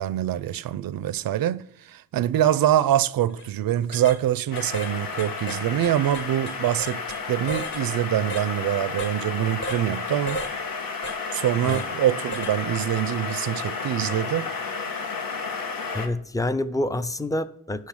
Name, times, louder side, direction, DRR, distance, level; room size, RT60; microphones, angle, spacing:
voice 1, 0.0-7.0 7.3-10.4 11.3-14.5, right 12 dB, 80° right, 0.6 m, -24 dB
sound 1, 3.3-3.5 3.9-4.2 4.6-4.9 5.2-7.2 7.5-7.8 8.3-8.5 9.0-9.2 9.6-9.8 10.3-10.5 11.0-11.2 11.7-11.9 12.3-12.6 13.0-13.1, right 1 dB, 35° left, 0.9 m, -34 dB
sound 2, 4.5-16.1, left 4 dB, 80° left, 1.4 m, -32 dB
voice 2, 15.9-17.9, left 1 dB, 10° left, 0.5 m, -27 dB
11.5 x 4.0 x 7.2 m
wide cardioid pair, 120°, 34 cm